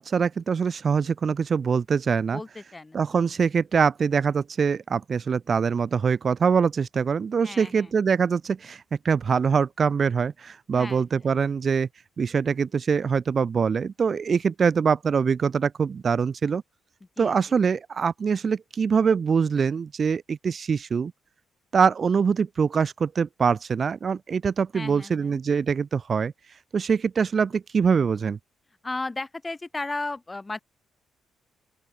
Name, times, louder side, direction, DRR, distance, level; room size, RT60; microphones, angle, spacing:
voice 1, 0.0-2.4 2.9-11.9 12.2-16.6 17.2-21.1 21.7-26.3 26.7-28.4, right 6 dB, 45° right, 0.5 m, -24 dB
voice 2, 2.3-3.3 7.4-7.9 10.7-11.3 17.2-17.4 24.7-25.4 28.8-30.6, left 2 dB, 20° left, 3.9 m, -35 dB
open air
cardioid pair, 90°, 0 cm